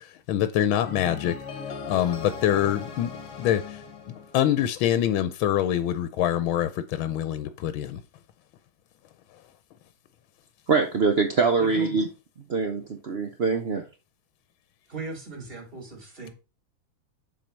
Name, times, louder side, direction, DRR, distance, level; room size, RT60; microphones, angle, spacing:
voice 1, 0.0-1.3 1.9-3.1 3.4-3.8 4.3-8.0, left 11 dB, 85° left, 1.5 m, -25 dB
sound 1, 0.8-4.9, left 5 dB, 60° left, 1.7 m, -39 dB
voice 2, 10.7-12.1 12.5-13.8, right 4 dB, 75° right, 0.5 m, -23 dB
voice 3, 14.9-16.3, right 3 dB, 25° right, 2.9 m, -37 dB
7.5 x 4.8 x 5.2 m
omnidirectional pair, 2.2 m